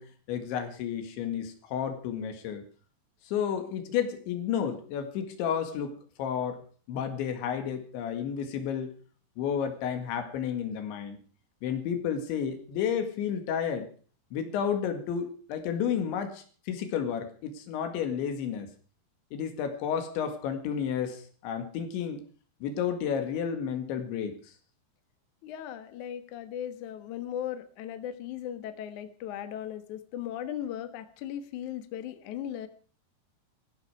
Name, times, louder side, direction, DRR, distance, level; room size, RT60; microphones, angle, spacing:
voice 1, 0.0-2.6 3.3-6.6 6.9-9.0 9.4-11.2 11.6-13.9 14.3-18.7 19.3-22.2 22.6-24.4, left 8 dB, 90° left, 7 dB, 4.3 m, -31 dB
voice 2, 25.4-32.7, left 10 dB, 60° left, 10 dB, 2.2 m, -37 dB
17.5 x 15.0 x 4.9 m, 0.41 s
omnidirectional pair, 5.1 m